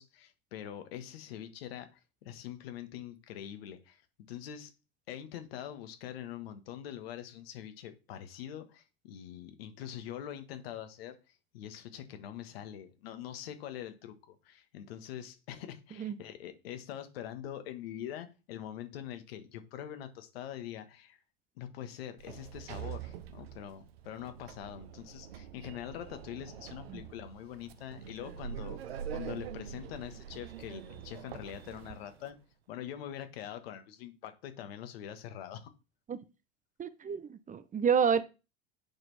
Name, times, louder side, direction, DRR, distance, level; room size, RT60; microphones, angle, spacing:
voice 1, 0.0-4.0 4.3-4.7 5.1-11.2 11.5-21.2 21.6-32.3 32.7-35.7, left 10 dB, 80° left, 1.5 m, -44 dB
Sliding door, 22.2-32.3, right 9 dB, 85° right, 0.8 m, -45 dB
voice 2, 36.8-38.2, right 7 dB, 25° right, 0.7 m, -29 dB
8.7 x 4.5 x 4.1 m
hypercardioid pair, 90°, 30 cm